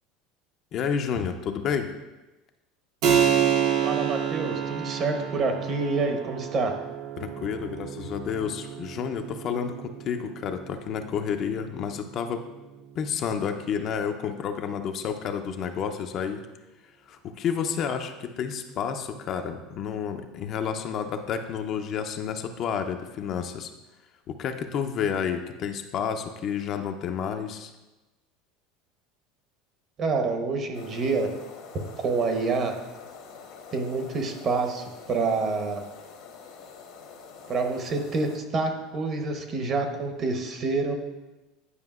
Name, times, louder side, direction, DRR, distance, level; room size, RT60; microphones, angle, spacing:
voice 1, 0.7-1.9 7.2-12.4 12.9-16.5 17.1-23.7 24.3-27.7, left 7 dB, 45° left, 6 dB, 0.5 m, -30 dB
Keyboard (musical), 3.0-13.2, right 8 dB, 65° right, 0.8 m, -29 dB
voice 2, 3.8-6.8 30.0-31.3 32.0-32.7 33.7-35.8 37.5-41.0, right 3 dB, 35° right, 5 dB, 0.8 m, -27 dB
sound 1, 30.7-38.4, left 5 dB, 70° left, 1.1 m, -46 dB
9.6 x 4.9 x 2.4 m, 1.1 s
supercardioid pair, 130°, 0 cm